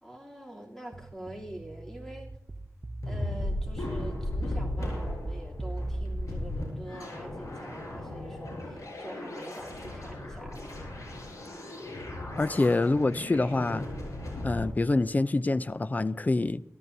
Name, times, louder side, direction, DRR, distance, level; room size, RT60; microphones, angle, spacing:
voice 1, 0.0-2.3 3.0-10.7, right 1 dB, 10° left, 3.0 m, -45 dB
sound 1, 0.9-6.3, right 2 dB, 35° right, 0.7 m, -37 dB
sound 2, 3.0-14.6, left 1 dB, 75° left, 7.6 m, -37 dB
voice 2, 12.4-13.9 14.4-16.6, left 2 dB, 30° left, 0.4 m, -26 dB
26.0 x 13.5 x 2.7 m
wide cardioid pair, 80°, 6 cm